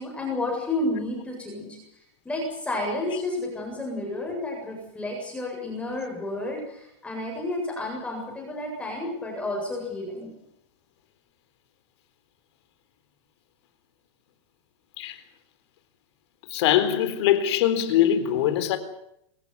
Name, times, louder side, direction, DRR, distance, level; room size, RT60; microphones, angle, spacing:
voice 1, 0.0-1.8 2.2-10.3, left 2 dB, 10° left, 7.7 m, -31 dB
voice 2, 16.5-18.8, left 11 dB, 70° left, 3.9 m, -22 dB
25.5 x 15.5 x 9.8 m
supercardioid pair, 145°, 15 cm